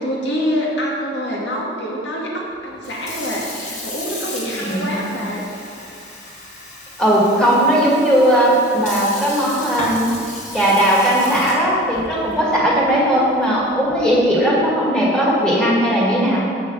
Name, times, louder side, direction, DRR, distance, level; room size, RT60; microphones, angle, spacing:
voice 1, 0.0-5.5, equal, 70° left, -3 dB, 2.0 m, -26 dB
Sink (filling or washing) / Fill (with liquid), 2.7-14.3, left 1 dB, 40° left, 2.0 m, -34 dB
voice 2, 7.0-10.1 10.5-16.5, equal, 5° left, -6 dB, 2.1 m, -17 dB
7.6 x 6.4 x 6.4 m, 2.3 s
head